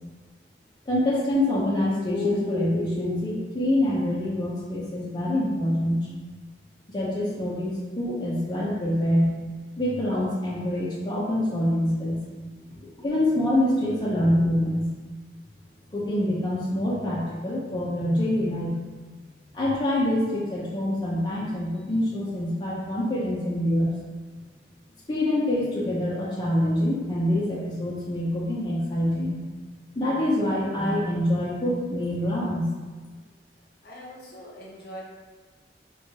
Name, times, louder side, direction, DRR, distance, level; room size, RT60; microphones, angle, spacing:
voice 1, 0.9-6.1 6.9-9.3 9.8-12.2 13.0-14.9 15.9-18.7 19.5-23.9 25.1-32.7, left 1 dB, 25° left, -6 dB, 0.5 m, -25 dB
voice 2, 33.8-35.0, equal, 60° left, -3 dB, 0.7 m, -42 dB
4.3 x 2.3 x 2.8 m, 1.4 s
head